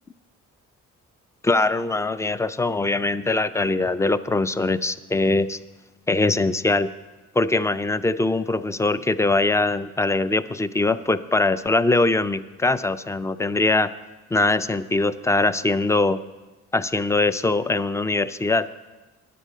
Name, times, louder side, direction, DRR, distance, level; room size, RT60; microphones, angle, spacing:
voice 1, 1.4-5.6 6.1-6.9 7.4-13.9 14.3-16.2 16.7-18.7, left 2 dB, 10° left, 13 dB, 0.3 m, -22 dB
10.0 x 7.4 x 6.3 m, 1.2 s
cardioid pair, 90°, 30 cm